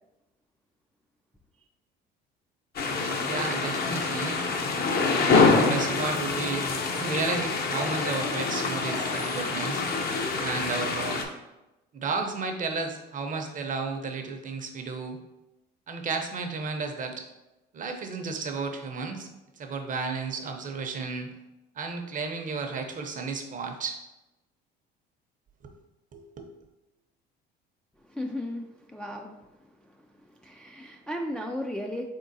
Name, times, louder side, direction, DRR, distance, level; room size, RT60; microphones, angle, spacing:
sound 1, 2.8-11.3, left 4 dB, 45° left, 0.7 m, -26 dB
voice 1, 3.2-4.4 5.2-6.7 7.0-9.8 10.4-11.3 11.9-15.2 15.9-17.2 17.7-19.3 19.6-21.3 21.8-24.0 25.6-25.7 26.1-26.5, right 4 dB, 40° right, 4 dB, 0.7 m, -33 dB
voice 2, 28.0-32.1, left 1 dB, 5° left, 1 dB, 0.3 m, -36 dB
3.7 x 3.7 x 2.6 m, 0.98 s
supercardioid pair, 80°, 21 cm